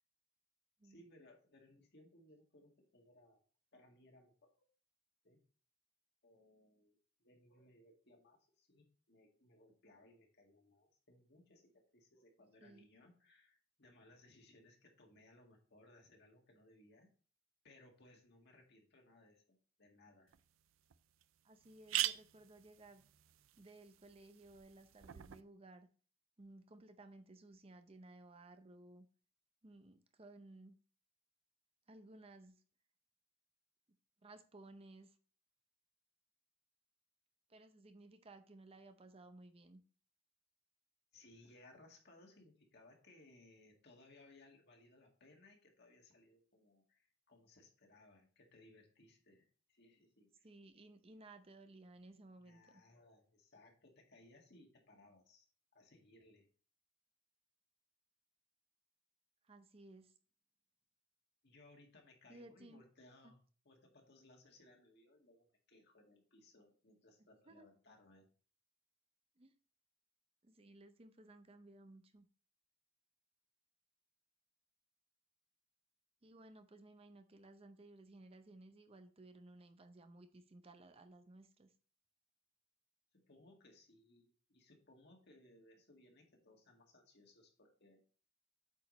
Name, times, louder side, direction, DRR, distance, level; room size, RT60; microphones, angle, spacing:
voice 1, 0.8-3.4 3.7-4.7 5.2-5.4 6.2-17.1 17.6-20.3 41.1-50.5 52.4-55.5 55.7-56.5 61.4-68.3 83.1-88.0, left 2 dB, 55° left, 1 dB, 1.9 m, -65 dB
sound 1, 20.3-20.4 20.9-21.0 21.2-21.3 21.6-25.4, right 14 dB, 90° right, 0.4 m, -43 dB
voice 2, 21.4-23.0 23.6-25.9 26.4-29.1 29.6-30.8 31.9-32.6 34.2-35.2 37.5-39.8 50.4-52.8 59.4-60.1 62.3-62.8 63.2-63.3 67.5-67.7 69.4-69.5 70.4-72.3 76.2-81.7, right 2 dB, 30° right, 9 dB, 0.6 m, -58 dB
8.3 x 4.9 x 3.9 m, 0.40 s
head